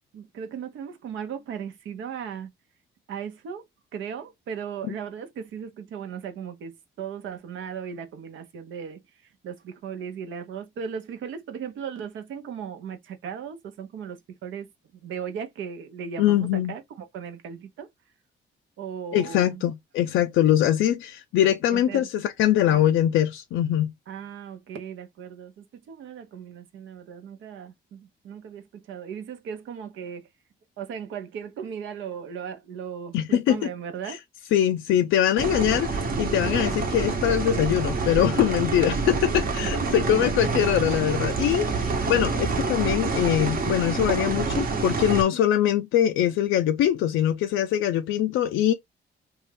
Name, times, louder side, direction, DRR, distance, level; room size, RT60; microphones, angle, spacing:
voice 1, 0.1-2.5 3.1-3.7 3.9-9.0 9.4-17.9 18.8-19.6 21.7-22.1 22.6-22.9 24.1-30.3 30.8-34.2 39.6-40.5, right 7 dB, 75° right, 0.7 m, -37 dB
voice 2, 16.2-16.7 19.1-23.9 33.1-33.6 34.1-34.2 34.5-48.7, left 11 dB, 80° left, 0.4 m, -23 dB
sound 1, 35.4-45.2, right 4 dB, 45° right, 0.9 m, -27 dB
2.7 x 2.3 x 3.3 m
cardioid pair, 90°, 20 cm